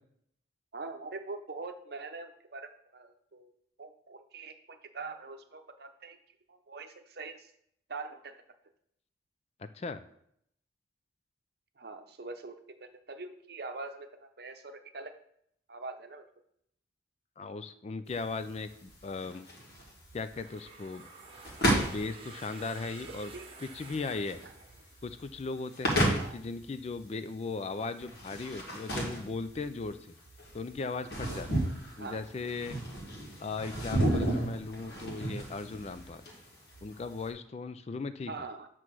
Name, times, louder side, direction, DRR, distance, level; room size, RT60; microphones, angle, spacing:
voice 1, 0.7-3.5 3.8-6.2 6.5-7.5 7.9-8.3 11.8-15.1 15.7-16.2 23.3-23.5 24.4-24.5 25.9-26.4 32.0-32.2 38.3-38.7, right 3 dB, 55° right, 7 dB, 0.7 m, -43 dB
voice 2, 9.6-10.0 17.4-19.5 20.1-21.0 21.9-23.3 23.6-24.4 25.0-30.1 30.5-31.7 32.0-32.8 33.4-36.2 36.8-38.5, left 4 dB, 35° left, 11 dB, 0.3 m, -37 dB
sound 1, 18.1-37.3, right 1 dB, 55° left, 1.6 m, -34 dB
sound 2, 20.3-25.2, right 4 dB, 30° right, 1.0 m, -51 dB
7.8 x 3.0 x 6.1 m, 0.72 s
head